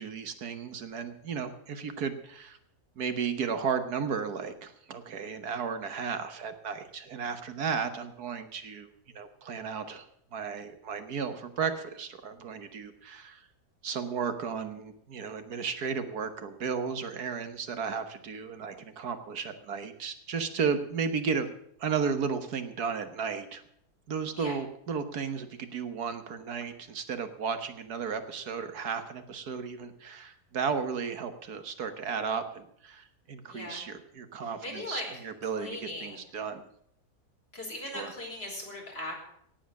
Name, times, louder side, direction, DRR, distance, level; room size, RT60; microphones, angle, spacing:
voice 1, 0.0-2.6 3.0-8.9 9.1-10.1 10.3-13.5 13.8-21.5 21.8-23.6 24.1-36.7 37.9-38.1, right 6 dB, 75° right, 9 dB, 1.8 m, -34 dB
voice 2, 33.5-33.8 34.4-36.3 37.5-39.1, left 1 dB, 40° left, -1 dB, 4.9 m, -39 dB
18.0 x 7.9 x 7.4 m, 0.69 s
omnidirectional pair, 1.7 m